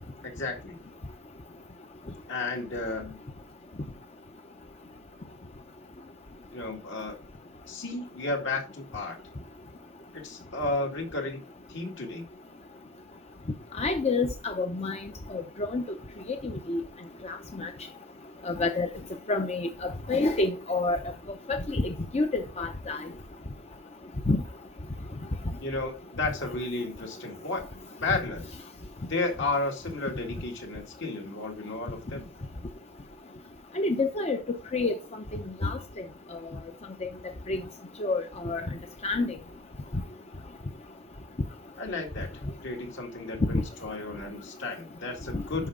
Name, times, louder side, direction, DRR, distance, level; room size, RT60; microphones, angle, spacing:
voice 1, 0.2-0.8 2.3-3.2 6.5-7.2 7.7-9.2 10.1-11.4 11.7-12.3 25.6-27.6 28.0-28.4 29.1-32.3 41.8-42.3 42.6-45.7, left 2 dB, 60° left, 2.1 m, -33 dB
voice 2, 13.7-15.0 15.3-15.4 15.7-15.8 16.4-16.8 17.2-17.7 18.4-18.9 19.3-21.0 21.5-23.0 24.3-24.4 33.7-34.4 34.7-34.9 35.3-35.8 37.0-37.1 37.5-37.6 38.0-38.7 39.0-39.4 43.5-43.6 45.3-45.4, left 3 dB, 30° left, 0.7 m, -28 dB
11.0 x 5.1 x 3.7 m
head